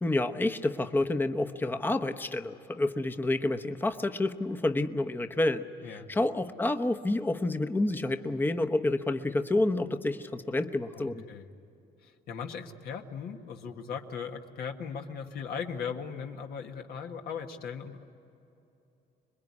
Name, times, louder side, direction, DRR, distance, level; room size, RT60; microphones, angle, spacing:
voice 1, 0.0-5.7 6.1-11.2, left 2 dB, 10° left, 7 dB, 1.0 m, -29 dB
voice 2, 10.9-11.5 12.0-18.0, left 6 dB, 65° left, 3 dB, 1.7 m, -38 dB
26.0 x 21.5 x 9.7 m, 2.9 s
cardioid pair, 110°, 17 cm